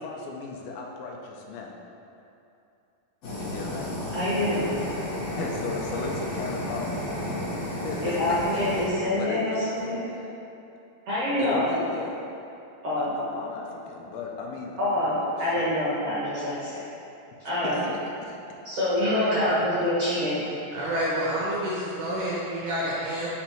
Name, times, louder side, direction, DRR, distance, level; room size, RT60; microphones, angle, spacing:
voice 1, 0.0-1.8 3.4-4.2 5.3-8.4 8.8-10.3 11.4-12.2 13.0-15.3 15.5-15.7 17.5-18.3, left 4 dB, 85° left, 1 dB, 2.4 m, -37 dB
Fire, 3.2-8.9, equal, 55° left, 2.3 m, -32 dB
voice 2, 4.1-4.7 8.0-10.0 11.1-11.6 12.8-13.1 14.8-16.8 17.4-17.8 18.6-20.4, left 1 dB, 60° right, -11 dB, 1.6 m, -26 dB
voice 3, 19.0-19.5 20.7-23.3, right 1 dB, 75° right, -6 dB, 1.9 m, -29 dB
5.5 x 4.3 x 4.4 m, 2.8 s
omnidirectional pair, 4.2 m